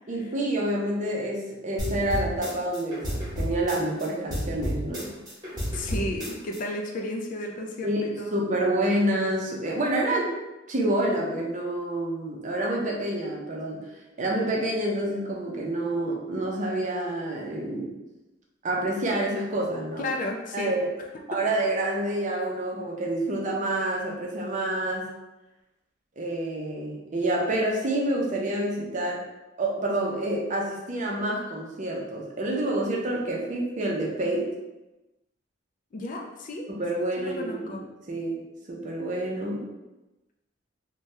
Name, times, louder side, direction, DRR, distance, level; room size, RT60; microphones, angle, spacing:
voice 1, 0.1-5.1 7.8-10.3 10.7-13.8 14.2-17.9 18.6-20.0 20.5-20.9 21.3-25.1 26.2-29.2 29.6-34.5 36.7-37.8 38.1-38.4 38.7-39.7, right 1 dB, 40° right, -2 dB, 0.5 m, -28 dB
sound 1, 1.8-4.1 4.3-6.6, equal, 20° right, 1.0 m, -31 dB
voice 2, 5.7-8.3 20.0-20.7 35.9-36.7 37.2-37.8, left 1 dB, 40° left, 0 dB, 0.3 m, -33 dB
2.7 x 2.2 x 3.2 m, 1.0 s
head